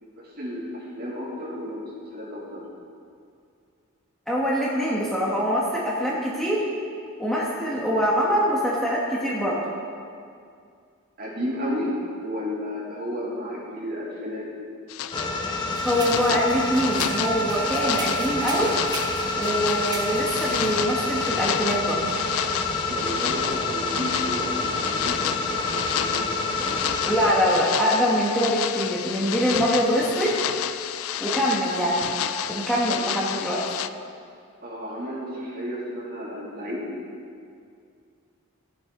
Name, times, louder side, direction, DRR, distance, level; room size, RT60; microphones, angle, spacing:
voice 1, 0.0-1.8 2.1-2.6 11.2-11.9 12.2-14.5 22.9-26.8 34.6-36.9, equal, 45° right, -5 dB, 2.6 m, -33 dB
voice 2, 4.3-6.6 7.2-9.6 15.5-18.7 19.4-22.0 27.0-30.3 31.2-32.0 32.5-33.6, equal, ahead, -6 dB, 1.2 m, -24 dB
sound 1, 14.9-33.9, left 11 dB, 75° left, 0.4 m, -31 dB
sound 2, 15.1-27.3, left 2 dB, 20° left, 0.9 m, -28 dB
sound 3, 15.7-20.8, right 2 dB, 20° right, 1.1 m, -38 dB
15.0 x 8.0 x 3.8 m, 2.3 s
head